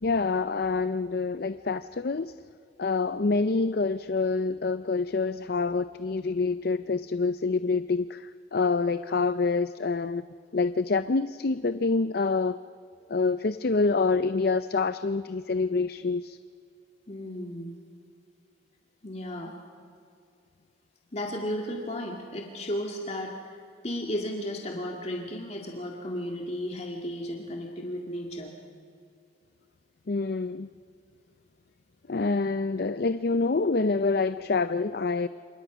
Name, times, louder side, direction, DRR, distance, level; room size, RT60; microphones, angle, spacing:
voice 1, 0.0-2.4 2.8-10.2 10.5-12.6 13.1-16.4 30.1-30.7 32.1-35.3, left 4 dB, 55° left, 13 dB, 0.5 m, -26 dB
voice 2, 17.1-17.8 19.0-19.6 21.1-28.5, equal, 35° left, 0 dB, 2.1 m, -34 dB
29.5 x 27.0 x 6.2 m, 2.4 s
head